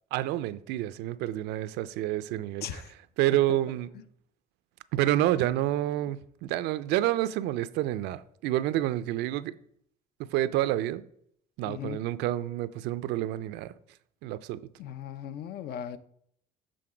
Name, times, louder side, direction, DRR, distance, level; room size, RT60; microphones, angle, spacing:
voice 1, 0.1-2.8 3.2-3.9 4.9-9.5 10.3-11.0 11.6-13.7 14.2-14.6, right 14 dB, 85° right, 0.4 m, -28 dB
voice 2, 11.6-12.0 14.8-16.0, left 9 dB, 70° left, 0.6 m, -38 dB
7.7 x 3.8 x 4.9 m
cardioid pair, 110°, 17 cm